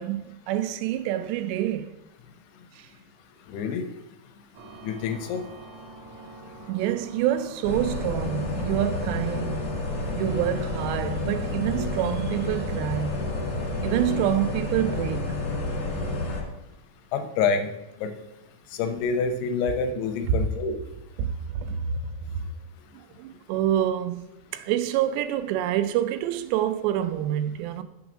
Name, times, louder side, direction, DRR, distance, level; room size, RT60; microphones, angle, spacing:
voice 1, 0.0-1.9 2.8-2.9 6.7-9.8 10.1-13.2 13.8-15.4 21.2-22.0 23.2-24.2 24.5-27.8, right 11 dB, 90° right, 2.8 m, -27 dB
voice 2, 3.5-3.9 4.8-5.4 17.1-17.7 18.0-18.1 18.8-20.8, left 5 dB, 85° left, 2.7 m, -27 dB
sound 1, 4.5-15.2, right 3 dB, 70° right, 1.5 m, -45 dB
sound 2, 7.6-16.4, left 2 dB, 55° left, 1.9 m, -30 dB
7.0 x 6.0 x 6.2 m
omnidirectional pair, 4.9 m